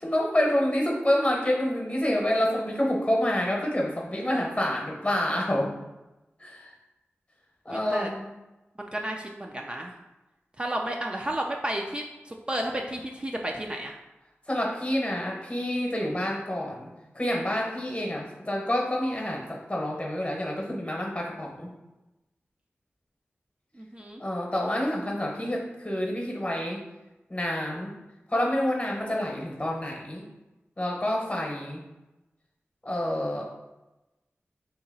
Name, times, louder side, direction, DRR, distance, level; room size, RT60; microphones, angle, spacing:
voice 1, 0.0-5.7 6.4-6.7 7.6-8.3 14.5-21.7 24.2-26.8 27.3-28.0 28.3-30.2 30.8-31.8 32.8-33.5, left 1 dB, 30° left, -1 dB, 0.9 m, -28 dB
voice 2, 7.7-8.1 8.8-9.9 10.6-14.0 23.7-24.2, right 1 dB, 25° right, 0 dB, 0.4 m, -32 dB
2.9 x 2.8 x 4.0 m, 1.0 s
cardioid pair, 50°, 4 cm